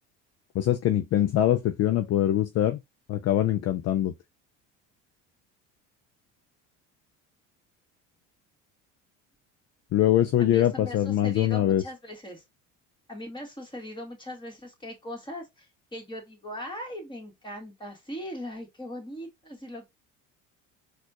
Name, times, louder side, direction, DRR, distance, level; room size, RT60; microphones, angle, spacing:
voice 1, 0.5-2.8 3.1-4.1 9.9-11.8, left 12 dB, 45° left, 0.5 m, -23 dB
voice 2, 10.4-12.4 13.1-19.9, equal, 15° left, 1.8 m, -40 dB
4.1 x 2.4 x 2.9 m
supercardioid pair, 85°, 34 cm